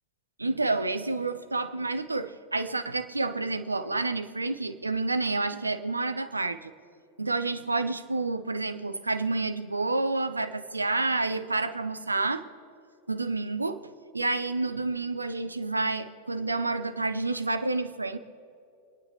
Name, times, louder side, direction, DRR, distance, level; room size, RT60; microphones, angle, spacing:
voice 1, 0.4-6.7 7.2-12.4 13.1-18.2, right 3 dB, 80° right, 12 dB, 0.7 m, -29 dB
27.5 x 9.7 x 3.3 m, 2.7 s
figure-of-eight pair, 90°, 0 cm